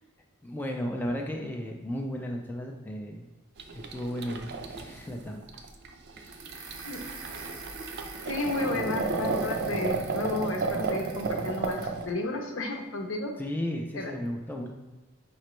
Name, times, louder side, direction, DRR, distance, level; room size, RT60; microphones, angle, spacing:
voice 1, 0.4-3.3 3.7-5.7 6.2-6.3 13.4-14.7, equal, 10° left, 1 dB, 0.3 m, -34 dB
sound 1, 3.6-12.1, right 4 dB, 55° right, 0.4 m, -33 dB
sound 2, 6.3-12.0, right 4 dB, 90° right, 0.8 m, -44 dB
voice 2, 8.2-11.8 12.1-13.3 13.9-14.1, left 2 dB, 65° left, 3 dB, 0.7 m, -32 dB
5.0 x 3.1 x 3.0 m, 1.1 s
head